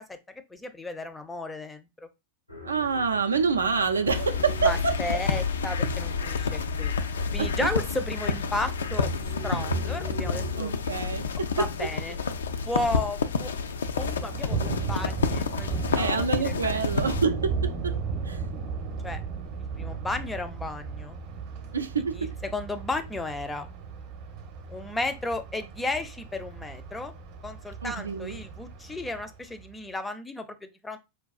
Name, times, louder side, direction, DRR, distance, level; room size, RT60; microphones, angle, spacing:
voice 1, 0.5-2.1 4.6-6.5 6.8-7.0 7.3-9.1 9.4-10.7 11.6-12.2 12.7-13.5 14.0-16.8 19.0-19.2 19.8-21.2 22.1-23.7 24.7-27.1 27.4-31.0, left 2 dB, 10° left, 0.5 m, -34 dB
sound 1, 2.5-10.6, left 1 dB, 85° left, 0.9 m, -37 dB
voice 2, 2.6-5.2 7.4-7.7 10.5-11.5 15.9-18.0 18.3-18.5 21.7-22.3 27.8-28.4, right 5 dB, 75° right, 0.4 m, -27 dB
sound 2, 4.1-17.3, left 5 dB, 65° left, 0.3 m, -29 dB
Thunder, 13.8-29.7, right 5 dB, 45° right, 0.7 m, -35 dB
5.0 x 2.2 x 2.4 m
figure-of-eight pair, 90°, 0 cm